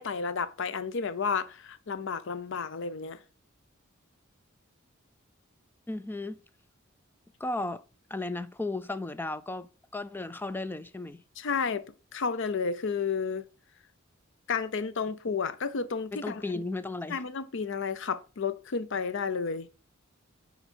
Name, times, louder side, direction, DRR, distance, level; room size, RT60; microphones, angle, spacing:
voice 1, 0.0-3.2 11.4-11.8 12.1-13.4 14.5-16.4 17.1-19.7, left 5 dB, 60° left, 0.6 m, -31 dB
voice 2, 5.9-6.4 7.4-7.8 8.1-11.2 16.1-17.2, left 2 dB, 10° left, 0.3 m, -35 dB
9.0 x 4.0 x 4.3 m
head